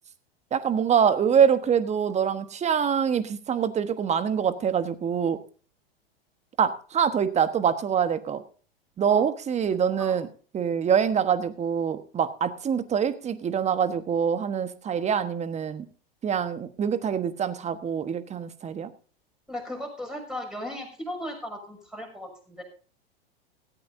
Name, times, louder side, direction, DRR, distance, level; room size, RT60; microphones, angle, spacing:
voice 1, 0.5-5.4 6.6-8.4 9.0-10.3 10.5-15.8 16.2-18.9, right 7 dB, 20° right, 12 dB, 1.3 m, -25 dB
voice 2, 19.5-22.6, left 1 dB, ahead, 2 dB, 6.4 m, -36 dB
17.5 x 14.0 x 2.7 m, 0.39 s
hypercardioid pair, 100°, 30 cm